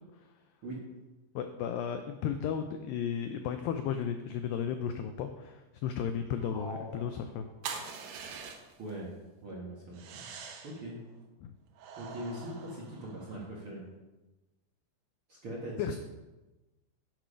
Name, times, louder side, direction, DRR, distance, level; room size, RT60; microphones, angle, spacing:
voice 1, 1.4-7.5 11.4-11.5 15.8-16.0, left 8 dB, 90° left, 7 dB, 2.0 m, -34 dB
sound 1, 6.4-7.8, left 1 dB, 30° left, 2.3 m, -46 dB
sound 2, 7.6-8.9 9.9-10.8 11.8-13.4, right 6 dB, 85° right, 3.2 m, -44 dB
voice 2, 8.8-9.1 9.4-10.3 10.6-11.0 12.0-13.8 15.3-16.0, right 1 dB, 55° right, -5 dB, 1.5 m, -41 dB
9.1 x 6.8 x 5.0 m, 1.1 s
omnidirectional pair, 4.7 m